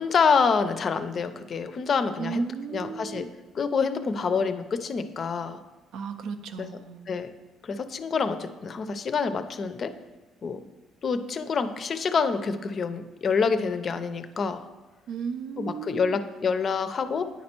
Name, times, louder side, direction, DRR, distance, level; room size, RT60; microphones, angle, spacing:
voice 1, 0.0-2.4 2.7-3.3 3.5-5.6 6.6-6.7 7.1-7.3 7.6-9.9 10.4-10.6 11.0-14.7 15.6-17.3, left 5 dB, 40° left, 11 dB, 0.5 m, -27 dB
voice 2, 2.2-3.3 5.9-7.0 15.1-16.2, right 6 dB, 70° right, 10 dB, 0.5 m, -35 dB
9.2 x 4.3 x 4.4 m, 1.2 s
cardioid pair, 110°, 0 cm